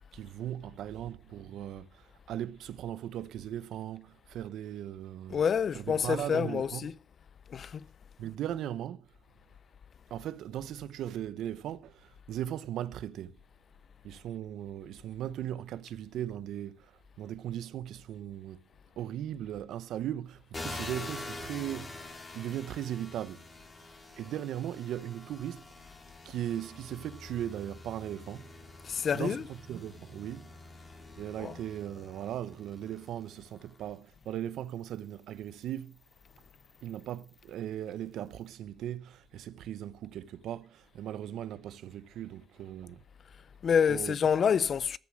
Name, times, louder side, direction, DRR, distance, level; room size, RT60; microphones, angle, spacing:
voice 1, 0.1-5.4 5.7-6.9 8.2-9.0 10.1-13.4 14.0-16.9 17.2-18.6 19.0-23.4 24.2-25.6 26.2-28.5 29.0-30.5 31.2-36.0 36.8-43.0 43.9-44.2, right 11 dB, 80° right, 0.8 m, -38 dB
voice 2, 5.3-6.9 7.5-7.8 28.8-29.5 31.4-31.5 43.6-45.0, left 7 dB, 50° left, 0.4 m, -27 dB
sound 1, 20.5-33.9 34.6-37.5, left 2 dB, 30° left, 2.9 m, -46 dB
13.5 x 7.0 x 6.2 m
cardioid pair, 90°, 0 cm